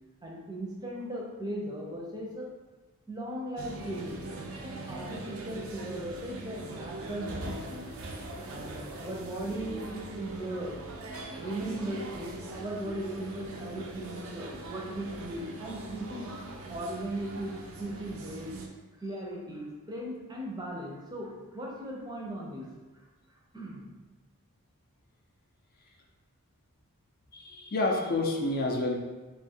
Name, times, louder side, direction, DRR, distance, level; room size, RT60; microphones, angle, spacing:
voice 1, 0.2-2.5 3.1-4.2 4.6-8.0 8.5-10.9 11.4-16.3 16.7-18.5 19.0-22.7 23.5-23.9, right 1 dB, 20° right, -2 dB, 0.6 m, -38 dB
sound 1, 3.6-18.7, right 2 dB, 65° right, 0.5 m, -41 dB
voice 2, 27.3-29.0, left 2 dB, 40° left, 0 dB, 0.5 m, -29 dB
3.5 x 2.4 x 4.3 m, 1.2 s
head